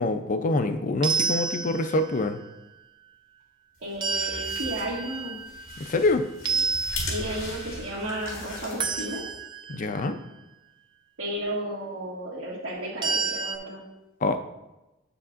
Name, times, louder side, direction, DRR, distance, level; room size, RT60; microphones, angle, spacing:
voice 1, 0.0-2.4 5.9-6.2 9.7-10.2 14.2-14.4, left 2 dB, 40° left, 9 dB, 0.5 m, -25 dB
sound 1, 1.0-2.2 4.0-6.0 6.5-7.7 8.8-9.8 13.0-13.6, right 4 dB, 20° right, 0.4 m, -30 dB
sound 2, 3.8-9.4, left 2 dB, 85° left, 2.3 m, -38 dB
voice 2, 3.8-5.4 6.6-6.7 7.0-9.2 11.2-13.8, right 1 dB, 80° right, -7 dB, 1.7 m, -33 dB
7.9 x 6.9 x 2.5 m, 1.0 s
head